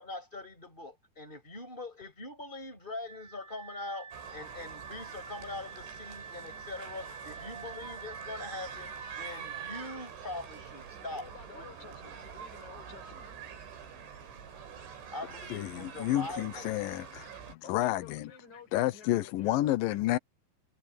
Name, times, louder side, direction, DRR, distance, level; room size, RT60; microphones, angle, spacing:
voice 1, 0.0-11.9 15.1-16.7, left 2 dB, 10° left, 7.2 m, -43 dB
Wind instrument woodwind instrument, 3.1-10.1, right 5 dB, 55° right, 5.0 m, -47 dB
sound 1, 4.1-17.6, right 7 dB, 85° right, 6.5 m, -46 dB
voice 2, 11.1-13.3 17.6-20.2, left 6 dB, 40° left, 7.1 m, -51 dB
voice 3, 15.5-18.3 18.7-20.2, left 15 dB, 90° left, 1.9 m, -30 dB
omnidirectional pair, 5.3 m